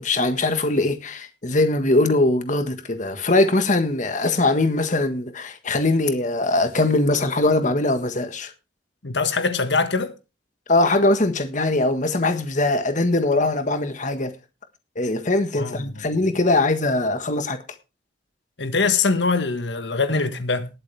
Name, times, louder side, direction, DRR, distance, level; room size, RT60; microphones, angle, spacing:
voice 1, 0.0-8.5 10.7-14.3 14.9-17.6, left 2 dB, 45° left, 1.5 m, -21 dB
voice 2, 9.0-10.1 15.6-16.0 18.6-20.7, left 4 dB, 80° left, 1.7 m, -23 dB
20.0 x 7.8 x 3.4 m
head